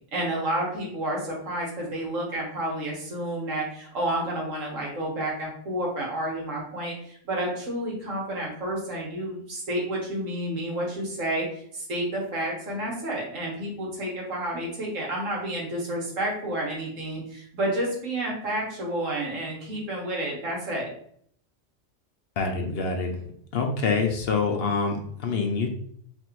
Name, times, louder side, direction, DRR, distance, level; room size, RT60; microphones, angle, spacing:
voice 1, 0.1-20.9, right 1 dB, 90° right, -2 dB, 1.7 m, -30 dB
voice 2, 22.4-23.1 23.5-25.7, left 4 dB, 60° left, 3 dB, 0.8 m, -26 dB
3.3 x 2.6 x 4.5 m, 0.65 s
omnidirectional pair, 1.3 m